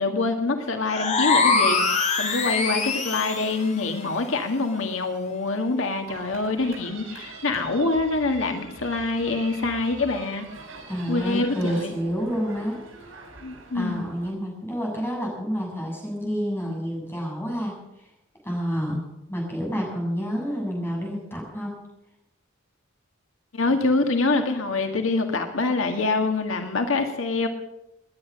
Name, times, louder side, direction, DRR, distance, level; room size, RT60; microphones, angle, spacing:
voice 1, 0.0-10.5 11.1-11.9 13.4-14.0 23.5-27.5, left 3 dB, 90° left, 5 dB, 1.8 m, -25 dB
sound 1, 0.9-3.6, left 4 dB, 35° left, 2.1 m, -23 dB
sound 2, 6.1-14.3, right 3 dB, 85° right, 7.1 m, -44 dB
voice 2, 10.9-12.8 13.7-17.8 18.4-21.7, equal, 10° left, -1 dB, 7.2 m, -29 dB
20.5 x 10.5 x 6.3 m, 0.85 s
head